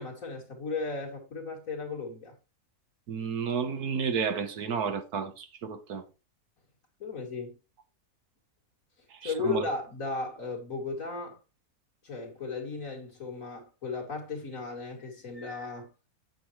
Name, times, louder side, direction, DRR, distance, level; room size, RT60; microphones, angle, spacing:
voice 1, 0.0-2.4 7.0-7.6 9.2-11.4 12.0-15.9, left 3 dB, 60° left, 2.9 m, -35 dB
voice 2, 3.1-6.0 9.2-9.7, right 6 dB, 85° right, 1.7 m, -31 dB
9.0 x 8.4 x 3.1 m
omnidirectional pair, 1.6 m